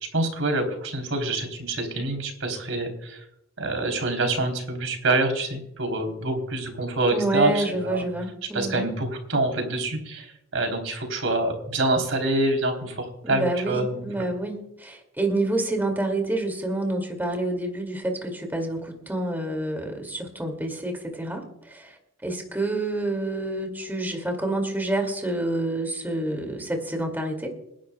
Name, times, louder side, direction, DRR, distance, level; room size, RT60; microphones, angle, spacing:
voice 1, 0.1-3.2 3.6-8.0 8.5-14.3, right 2 dB, 70° right, 4 dB, 3.4 m, -26 dB
voice 2, 7.1-8.9 13.2-22.0 22.2-27.5, right 2 dB, 10° right, 2 dB, 2.3 m, -28 dB
28.5 x 11.5 x 2.3 m, 0.78 s
head